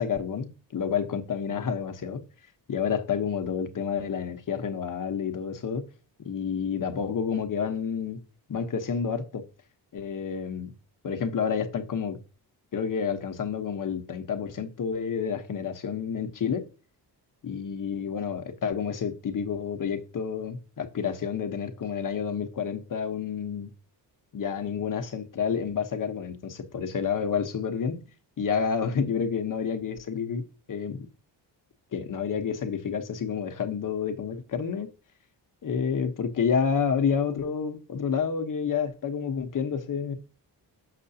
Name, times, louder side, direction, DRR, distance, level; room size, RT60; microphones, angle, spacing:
voice 1, 0.0-2.2 2.7-5.8 6.2-8.2 8.5-9.4 9.9-10.7 11.0-12.2 12.7-16.6 17.4-23.7 24.3-28.0 28.4-30.4 30.7-31.1 31.9-34.9 35.6-40.1, left 6 dB, 50° left, 1.1 m, -29 dB
6.8 x 5.9 x 2.8 m
cardioid pair, 105°, 42 cm